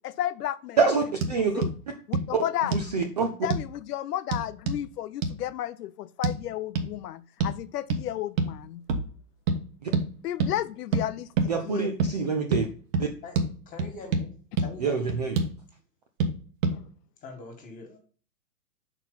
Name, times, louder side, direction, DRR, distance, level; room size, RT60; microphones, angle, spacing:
voice 1, 0.0-1.0 1.3-1.7 2.1-3.1 3.4-8.8 10.2-11.9 16.7-16.8, left 12 dB, 80° left, 0.5 m, -33 dB
voice 2, 0.8-1.6 2.7-3.3 9.8-9.9 11.5-12.7 13.0-13.1 14.8-15.4, right 5 dB, 30° right, 0.3 m, -26 dB
sound 1, 1.2-1.3 1.6-1.7 2.1-2.3 2.7-2.9 3.5-3.7 4.3-4.8 5.2-5.4 6.2-6.4 6.8-6.9 7.4-7.6 7.9-8.0 8.4-8.6 8.9-9.1 9.5-9.6 9.9-10.1 10.4-10.5 10.9-11.1 11.4-11.5 12.0-12.1 12.5-12.7 12.9-13.1 13.4-13.5 13.8-14.3 14.6-14.7 15.1-15.5 16.2-16.3 16.6-16.8, right 4 dB, 55° right, 1.3 m, -26 dB
voice 3, 13.7-14.3 14.6-15.2 17.2-18.0, left 3 dB, 15° left, 1.8 m, -42 dB
5.9 x 4.5 x 3.9 m
hypercardioid pair, 135°, 47 cm